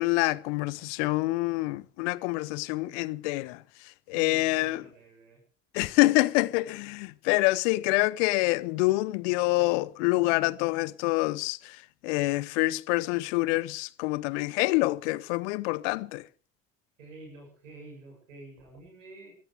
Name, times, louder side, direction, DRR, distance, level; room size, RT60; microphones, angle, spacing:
voice 1, 0.0-3.6 4.1-4.8 5.7-11.8 12.0-16.2, left 21 dB, 70° left, 0.8 m, -26 dB
voice 2, 4.1-5.4 17.0-19.3, right 2 dB, 85° right, 7.5 m, -49 dB
23.5 x 14.0 x 3.4 m
hypercardioid pair, 55°, 37 cm